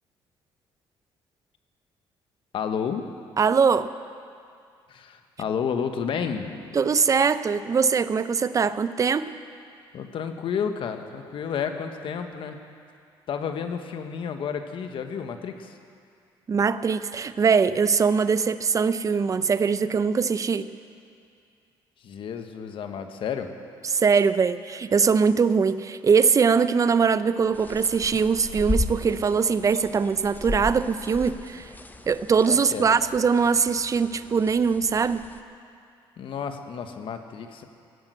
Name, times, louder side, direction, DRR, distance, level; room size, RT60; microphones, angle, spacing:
voice 1, 2.5-3.0 4.9-6.7 9.9-12.6 13.3-15.8 22.0-23.5 32.5-32.8 36.2-37.6, left 7 dB, 60° left, 7 dB, 1.3 m, -31 dB
voice 2, 3.4-3.9 6.7-9.2 16.5-20.7 23.8-31.7 32.1-35.2, right 5 dB, 35° right, 14 dB, 0.6 m, -22 dB
sound 1, 27.5-35.4, left 2 dB, 15° left, 0.9 m, -35 dB
17.0 x 8.9 x 8.0 m, 2.4 s
cardioid pair, 85°, 10 cm